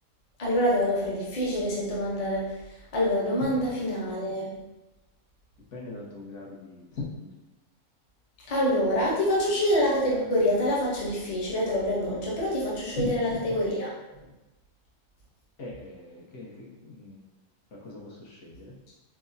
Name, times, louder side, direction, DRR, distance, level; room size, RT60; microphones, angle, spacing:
voice 1, 0.4-2.5 2.9-4.6 8.5-13.9, equal, 35° left, -5 dB, 0.6 m, -26 dB
voice 2, 3.4-3.7 5.7-7.3 13.0-13.4 15.6-17.3 17.8-18.7, left 2 dB, 60° left, -5 dB, 1.0 m, -39 dB
4.6 x 2.0 x 2.6 m, 1.0 s
omnidirectional pair, 1.6 m